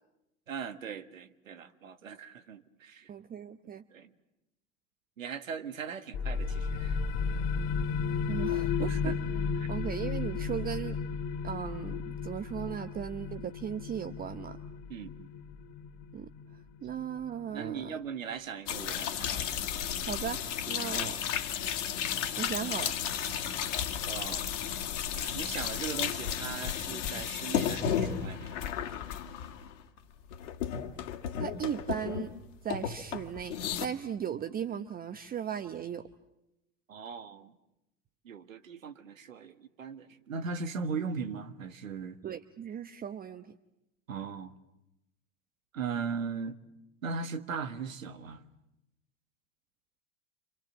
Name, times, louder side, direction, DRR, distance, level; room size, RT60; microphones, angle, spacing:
voice 1, 0.5-3.1 3.9-4.1 5.2-7.0 7.3-7.4 8.9-9.2 9.6-9.7 14.9-15.3 17.5-19.4 20.8-21.0 24.1-24.5 25.3-28.6 36.9-37.5 38.3-42.2 44.1-44.6 45.7-46.6 47.0-48.4, right 5 dB, 80° right, 1.7 m, -39 dB
voice 2, 3.1-3.8 8.3-9.1 9.7-11.0 11.4-14.6 16.1-16.3 16.8-18.0 20.0-20.4 20.7-21.2 22.4-23.0 31.4-32.3 32.6-36.1 42.2-43.5, right 8 dB, 20° right, 0.9 m, -37 dB
sound 1, 6.1-17.5, left 5 dB, 45° left, 1.4 m, -34 dB
sound 2, 18.7-30.0 30.3-32.4 32.7-33.9, left 9 dB, 65° left, 2.3 m, -33 dB
Writing, 20.1-20.4 20.6-20.8 21.1-21.4 21.6-22.4 22.6-22.9 23.1-23.4 23.6-23.8 24.1-24.3 24.6-24.8 25.1-25.3, right 6 dB, 40° right, 4.7 m, -53 dB
29.0 x 27.0 x 7.4 m
hypercardioid pair, 95°, 40 cm